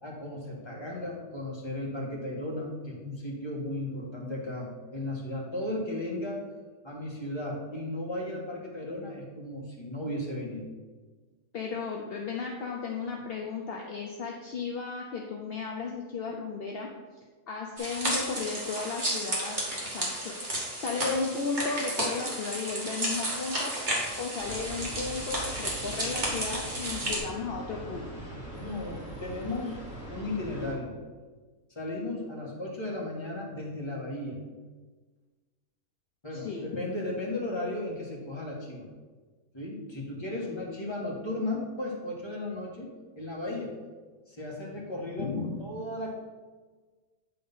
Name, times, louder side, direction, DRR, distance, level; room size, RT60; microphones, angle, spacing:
voice 1, 0.0-6.4 6.8-10.7 28.6-29.8 30.1-30.9 31.7-34.4 36.2-38.9 39.5-42.9 43.1-43.8 44.3-45.3 45.6-46.1, left 1 dB, 15° left, -4 dB, 1.6 m, -35 dB
voice 2, 11.5-16.9 17.5-19.6 19.8-20.3 20.8-23.7 24.2-28.1 36.3-36.7 45.2-45.6, left 4 dB, 55° left, 0 dB, 0.7 m, -34 dB
sound 1, 17.8-27.2, right 1 dB, 30° right, 1.9 m, -32 dB
sound 2, 24.4-30.7, right 1 dB, 5° right, 2.5 m, -42 dB
8.7 x 3.9 x 5.5 m, 1.4 s
omnidirectional pair, 1.7 m